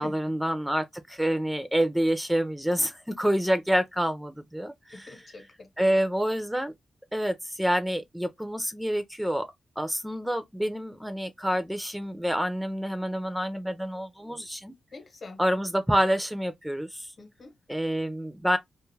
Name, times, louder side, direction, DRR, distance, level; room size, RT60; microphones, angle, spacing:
voice 1, 0.0-5.1 5.8-6.7 7.1-9.5 9.8-14.7 15.4-17.1 17.7-18.6, equal, 5° right, 0.4 m, -27 dB
voice 2, 4.9-6.0 14.9-15.4 17.2-17.6, left 3 dB, 50° left, 0.9 m, -44 dB
2.5 x 2.3 x 3.1 m
cardioid pair, 90°, 0 cm